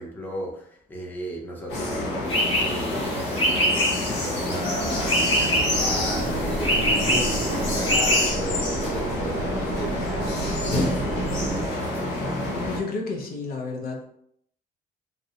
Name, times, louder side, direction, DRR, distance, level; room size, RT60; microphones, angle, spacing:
voice 1, 0.0-11.8, equal, 10° left, -2 dB, 0.5 m, -36 dB
sound 1, 1.7-12.8, left 1 dB, 90° left, 0.9 m, -28 dB
sound 2, 2.3-8.3, equal, 35° left, 0.9 m, -26 dB
sound 3, 4.7-11.7, right 2 dB, 70° right, 0.5 m, -31 dB
voice 2, 12.6-14.0, left 3 dB, 65° left, 0 dB, 0.6 m, -31 dB
2.4 x 2.0 x 2.7 m, 0.69 s
cardioid pair, 110°, 17 cm